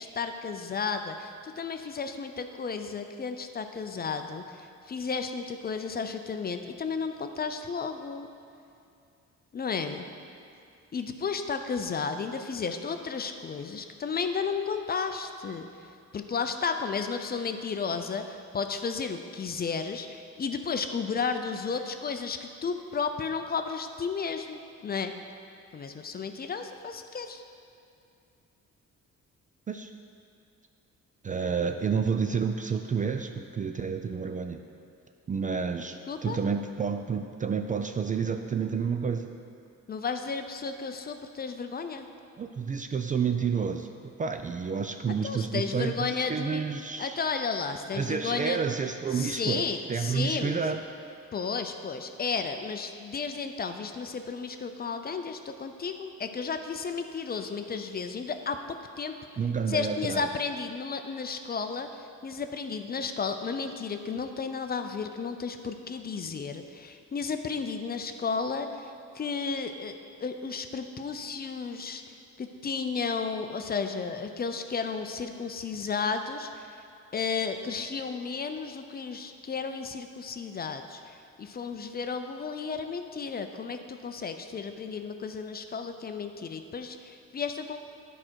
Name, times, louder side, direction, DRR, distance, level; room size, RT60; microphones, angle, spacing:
voice 1, 0.0-8.3 9.5-10.1 10.9-25.1 25.7-27.4 36.1-36.4 39.9-42.1 45.2-46.6 47.0-48.7 49.1-50.8 51.3-58.6 59.0-59.1 59.7-72.0 72.4-76.8 77.1-87.8, left 5 dB, 30° left, 7 dB, 0.5 m, -33 dB
voice 2, 31.2-34.6 35.3-36.0 36.2-39.3 42.4-47.2 47.9-50.8 59.4-60.3, right 6 dB, 25° right, 6 dB, 0.4 m, -30 dB
9.7 x 5.0 x 4.5 m, 2.5 s
cardioid pair, 90°, 30 cm